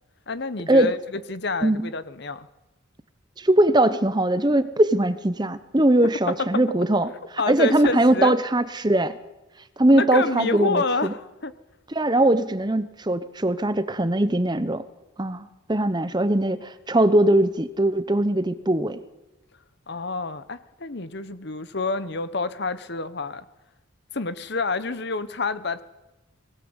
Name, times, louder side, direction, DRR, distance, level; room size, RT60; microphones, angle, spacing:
voice 1, 0.3-2.5 6.3-6.6 7.4-8.4 9.9-11.5 19.9-23.4 24.1-25.8, left 3 dB, 55° left, 14 dB, 1.0 m, -28 dB
voice 2, 3.4-7.1 7.5-9.2 9.8-11.1 11.9-14.8 15.2-19.0, right 1 dB, 20° right, 13 dB, 0.8 m, -21 dB
21.0 x 18.5 x 8.1 m, 1.0 s
head